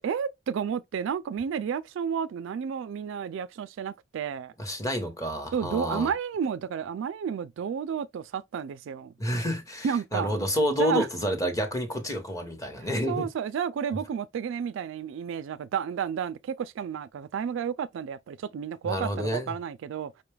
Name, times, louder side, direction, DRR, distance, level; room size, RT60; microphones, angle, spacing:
voice 1, 0.0-4.5 5.5-9.1 9.8-10.3 10.8-11.1 13.1-20.1, right 7 dB, 65° right, 0.3 m, -31 dB
voice 2, 4.6-6.1 9.2-13.3 18.8-19.5, equal, 15° left, 0.9 m, -29 dB
5.4 x 2.3 x 3.2 m
head